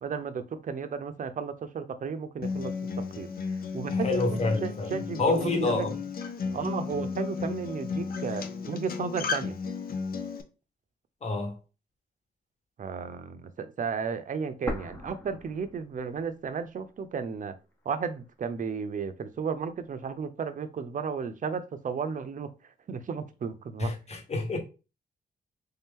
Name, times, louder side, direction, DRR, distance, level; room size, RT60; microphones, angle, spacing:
voice 1, 0.0-2.7 3.2-3.3 3.6-5.9 6.5-9.5 12.8-17.5 17.9-22.5 22.9-23.9, right 6 dB, 45° right, 0.6 m, -34 dB
Acoustic guitar, 2.4-10.4, left 5 dB, 55° left, 0.6 m, -34 dB
voice 2, 3.9-5.9 11.2-11.5 23.8-24.6, left 3 dB, 35° left, 1.3 m, -28 dB
sound 1, 14.7-16.6 16.9-17.0 17.7-18.7, left 1 dB, 10° left, 1.0 m, -40 dB
3.5 x 2.8 x 3.7 m
cardioid pair, 90°, 18 cm